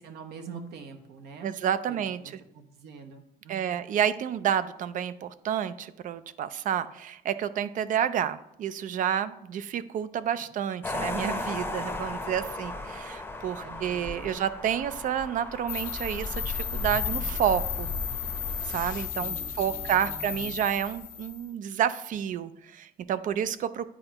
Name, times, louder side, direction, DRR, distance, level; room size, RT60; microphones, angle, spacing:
voice 1, 0.0-1.5 1.9-3.8 10.4-10.6 13.6-14.4 19.2-20.6, right 5 dB, 75° right, 5 dB, 1.0 m, -45 dB
voice 2, 1.4-2.2 3.5-17.9 18.6-23.9, right 9 dB, 50° right, 14 dB, 0.4 m, -30 dB
sound 1, 10.8-19.1, left 2 dB, 10° left, 0.7 m, -37 dB
sound 2, 15.7-21.4, left 7 dB, 55° left, 0.6 m, -33 dB
9.8 x 4.3 x 2.9 m, 0.80 s
cardioid pair, 110°, 17 cm